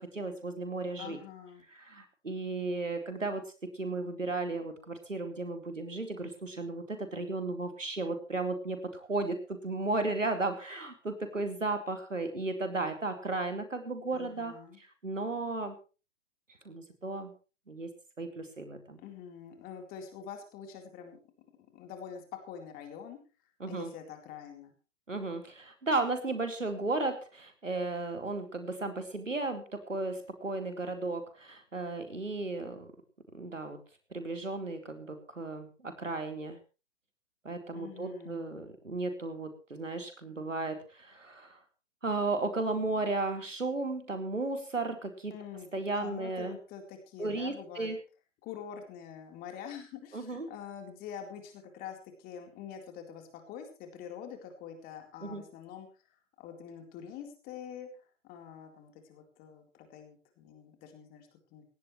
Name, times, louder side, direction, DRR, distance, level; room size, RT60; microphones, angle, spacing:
voice 1, 0.0-1.2 1.9-3.4 3.7-15.8 16.6-17.3 17.7-17.9 18.2-19.0 23.6-23.9 25.1-32.9 33.3-33.8 34.1-36.6 37.4-41.6 42.0-45.3 45.7-46.6 47.2-48.0 50.1-50.5 55.2-55.4, right 3 dB, 85° right, 6 dB, 4.3 m, -34 dB
voice 2, 1.0-1.6 14.1-14.8 19.0-21.2 21.6-23.2 23.7-24.7 37.7-38.6 45.3-47.9 48.4-55.9 56.4-61.7, left 8 dB, 25° left, 5 dB, 4.1 m, -45 dB
18.0 x 17.5 x 3.2 m, 0.33 s
figure-of-eight pair, 125°, 37 cm